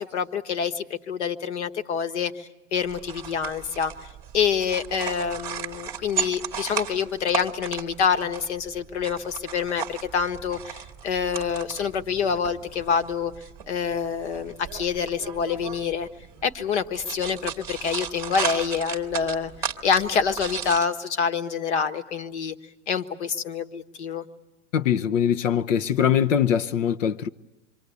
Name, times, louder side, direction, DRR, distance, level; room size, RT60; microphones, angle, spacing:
voice 1, 0.0-3.9 4.3-13.3 13.7-16.1 16.4-22.5 22.9-24.2, left 6 dB, 60° left, 1.5 m, -27 dB
sound 1, 2.8-20.8, right 7 dB, 10° right, 1.1 m, -36 dB
voice 2, 24.7-27.3, left 9 dB, 75° left, 0.9 m, -22 dB
27.5 x 24.5 x 8.2 m
supercardioid pair, 180°, 38 cm